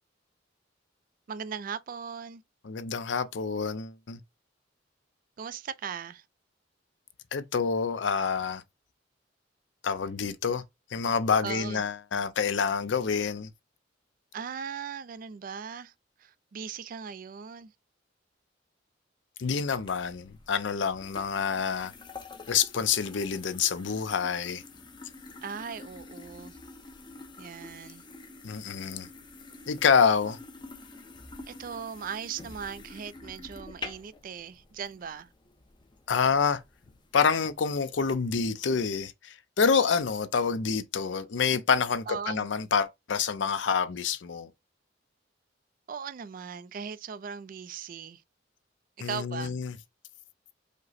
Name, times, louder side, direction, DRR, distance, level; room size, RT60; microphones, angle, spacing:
voice 1, 1.3-2.4 5.4-6.2 11.4-11.8 14.3-15.9 16.2-17.7 25.4-26.6 27.4-28.1 31.5-35.3 42.1-42.5 45.9-48.2 49.0-49.6, right 7 dB, 45° right, 0.3 m, -38 dB
voice 2, 2.6-4.2 7.3-8.6 9.8-10.6 10.9-13.5 19.4-21.9 22.5-24.6 28.4-29.1 29.7-30.4 36.1-36.6 37.1-44.5 49.0-49.8, left 6 dB, 75° left, 0.5 m, -27 dB
sound 1, 19.7-38.1, left 3 dB, 25° left, 0.6 m, -48 dB
5.1 x 2.1 x 4.0 m
head